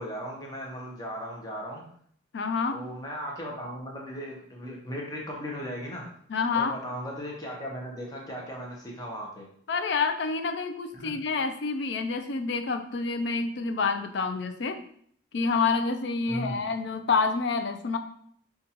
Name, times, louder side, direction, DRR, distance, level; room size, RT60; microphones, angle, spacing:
voice 1, 0.0-1.8 2.7-6.1 6.5-9.5 10.9-11.2 16.3-16.6, equal, 20° left, -1 dB, 0.7 m, -37 dB
voice 2, 2.3-2.8 6.3-6.7 9.7-14.8 15.3-18.0, left 4 dB, 65° left, 8 dB, 0.4 m, -28 dB
5.2 x 2.3 x 2.8 m, 0.63 s
head